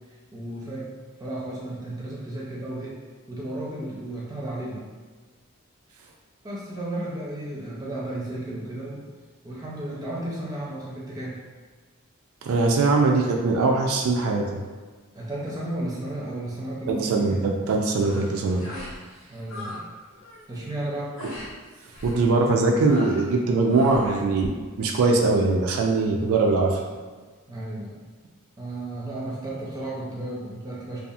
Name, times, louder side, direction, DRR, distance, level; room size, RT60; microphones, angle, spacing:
voice 1, 0.1-0.9 1.2-3.0 3.3-4.8 6.4-9.0 9.4-11.4 15.1-17.4 19.3-19.8 20.5-21.2 27.5-28.0 28.6-31.0, right 1 dB, 15° right, -5 dB, 0.5 m, -33 dB
voice 2, 12.4-14.4 16.9-18.7 22.0-24.5 24.8-26.8, right 3 dB, 80° right, 1 dB, 0.3 m, -21 dB
sound 1, 17.9-18.3 18.6-19.0 19.2-19.8 20.1-20.4 21.2-21.5 21.9-22.2 22.8-23.3 23.7-24.1, left 1 dB, 65° left, 0.6 m, -39 dB
2.7 x 2.3 x 2.4 m, 1.4 s
head